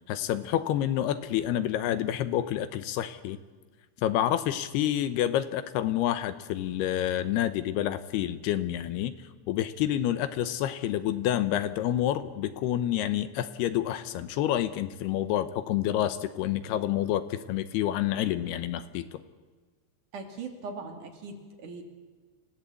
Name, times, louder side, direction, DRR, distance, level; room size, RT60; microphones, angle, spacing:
voice 1, 0.1-3.4 4.0-19.2, left 12 dB, 75° left, 12 dB, 2.6 m, -28 dB
voice 2, 20.1-21.8, right 4 dB, 50° right, 4 dB, 3.3 m, -40 dB
28.0 x 17.0 x 8.4 m, 1.4 s
omnidirectional pair, 5.2 m